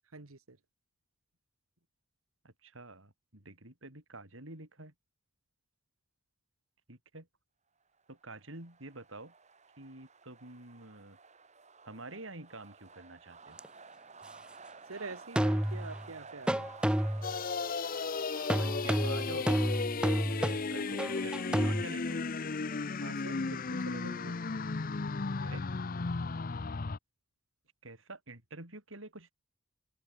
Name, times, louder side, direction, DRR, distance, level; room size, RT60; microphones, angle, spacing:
voice 1, 0.1-0.6 14.8-16.7 23.0-24.4, right 3 dB, 85° right, 1.6 m, -46 dB
voice 2, 2.4-4.9 6.9-7.3 8.1-9.3 9.8-11.2 11.8-13.6 18.5-19.7 20.4-22.4 25.4-25.7 27.8-29.3, right 2 dB, 65° right, 4.5 m, -48 dB
sound 1, 8.1-24.8, right 4 dB, 35° right, 4.6 m, -54 dB
sound 2, 13.6-13.7 15.4-16.1 16.5-17.4 18.5-21.8, equal, 5° right, 0.5 m, -30 dB
sound 3, 17.2-27.0, left 4 dB, 40° left, 0.6 m, -35 dB
head